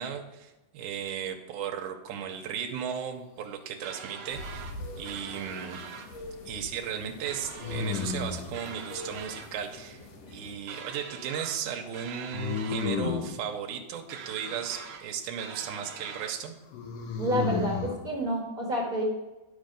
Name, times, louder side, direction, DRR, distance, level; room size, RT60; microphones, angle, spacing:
voice 1, 0.0-4.7 5.0-5.8 6.5-10.0 10.3-16.6, right 8 dB, 85° right, 3 dB, 2.3 m, -36 dB
sound 1, 3.8-4.7 5.0-6.1 7.2-8.2 8.5-9.5 10.7-11.6 11.9-12.9 14.1-15.0 15.4-16.4, right 6 dB, 65° right, 1.3 m, -43 dB
sound 2, 4.3-10.6, left 1 dB, 60° left, 2.2 m, -44 dB
sound 3, 4.9-5.6 7.6-8.6 12.3-13.4 16.7-18.0, left 5 dB, 85° left, 2.8 m, -32 dB
voice 2, 17.2-19.0, equal, 40° right, -2 dB, 1.3 m, -29 dB
10.5 x 5.9 x 5.2 m, 1.1 s
omnidirectional pair, 3.6 m